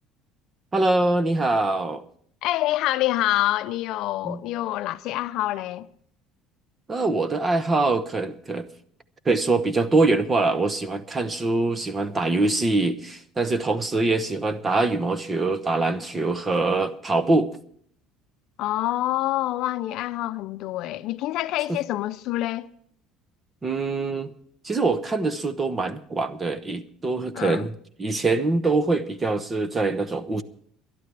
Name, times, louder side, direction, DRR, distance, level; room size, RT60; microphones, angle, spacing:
voice 1, 0.7-2.0 4.2-4.4 6.9-8.7 9.2-17.5 23.6-24.3 24.6-30.4, right 3 dB, 20° right, 0.9 m, -24 dB
voice 2, 2.4-5.9 18.6-22.7 27.3-27.7, left 15 dB, 60° left, 0.6 m, -26 dB
22.0 x 11.5 x 3.4 m
cardioid pair, 145°, 0 cm